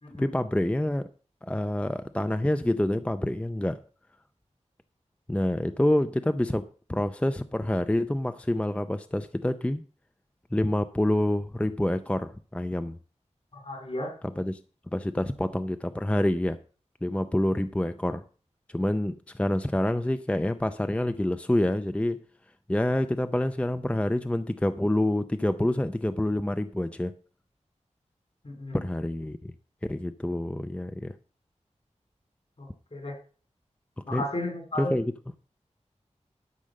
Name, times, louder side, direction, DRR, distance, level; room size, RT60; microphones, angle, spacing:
voice 1, 0.2-1.1 1.4-3.8 5.3-6.6 6.9-9.8 10.5-13.0 14.2-14.6 14.9-16.6 17.0-18.2 18.7-22.2 22.7-27.1 28.7-29.5 29.8-31.1 34.1-34.2 34.8-35.1, left 1 dB, 10° left, 10 dB, 0.5 m, -27 dB
voice 2, 13.5-14.1 28.4-28.8 32.6-33.2 34.1-34.9, left 1 dB, 50° left, 4 dB, 3.9 m, -34 dB
12.5 x 5.1 x 6.5 m, 0.40 s
wide cardioid pair, 80°, 12 cm